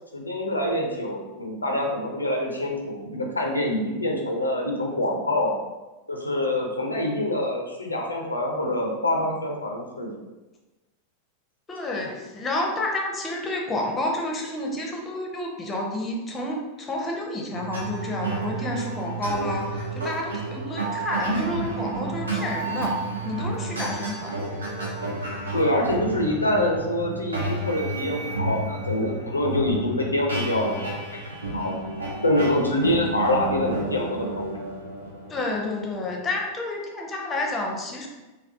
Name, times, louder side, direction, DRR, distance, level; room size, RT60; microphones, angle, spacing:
voice 1, 0.1-5.6 6.1-10.1 25.5-30.7 31.5-31.7 32.2-34.7, left 1 dB, 80° left, 0 dB, 0.4 m, -25 dB
voice 2, 11.7-24.3 35.3-38.1, left 2 dB, 20° left, 0 dB, 0.5 m, -30 dB
sound 1, 17.5-36.3, right 2 dB, 75° right, 0.6 m, -31 dB
3.3 x 2.2 x 2.6 m, 1.1 s
figure-of-eight pair, 90°, 0 cm